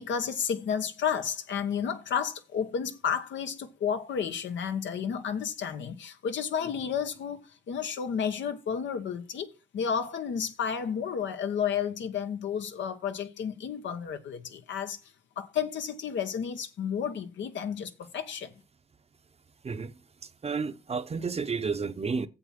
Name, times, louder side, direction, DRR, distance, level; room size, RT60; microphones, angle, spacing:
voice 1, 0.0-15.0 15.4-18.5, left 7 dB, 70° left, 1.4 m, -32 dB
voice 2, 20.4-22.3, right 5 dB, 30° right, 0.9 m, -31 dB
7.9 x 7.5 x 5.9 m
cardioid pair, 90°, 20 cm